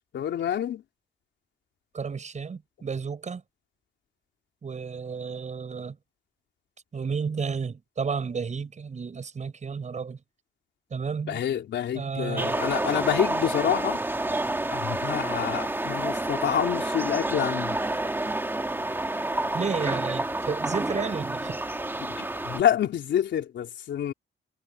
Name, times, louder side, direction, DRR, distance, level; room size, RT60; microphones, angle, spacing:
voice 1, 0.1-0.8 11.3-14.0 14.7-17.8 22.0-24.1, left 10 dB, 70° left, 3.9 m, -27 dB
voice 2, 1.9-3.4 4.6-6.0 6.9-10.2 10.9-11.4 11.9-12.6 19.5-21.7, right 5 dB, 40° right, 6.2 m, -32 dB
sound 1, 12.4-22.6, right 2 dB, 10° right, 2.3 m, -29 dB
cardioid pair, 110°, 19 cm